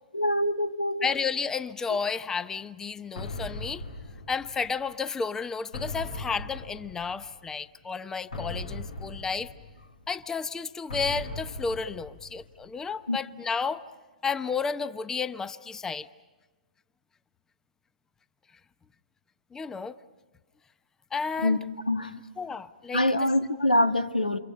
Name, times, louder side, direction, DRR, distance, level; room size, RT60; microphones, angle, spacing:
voice 1, 0.1-1.1 13.1-13.2 21.4-21.6 21.9-22.2 22.9-24.4, left 1 dB, 85° left, 1.5 m, -24 dB
voice 2, 1.0-3.8 4.3-9.5 10.1-13.8 14.2-16.1 19.5-20.0 21.1-21.6 22.4-23.3, left 5 dB, 10° left, 0.8 m, -32 dB
sound 1, 3.2-4.9 5.7-7.4 8.3-10.1 10.9-12.7, left 2 dB, 70° left, 2.8 m, -39 dB
30.0 x 27.5 x 5.4 m
figure-of-eight pair, 120°, 5 cm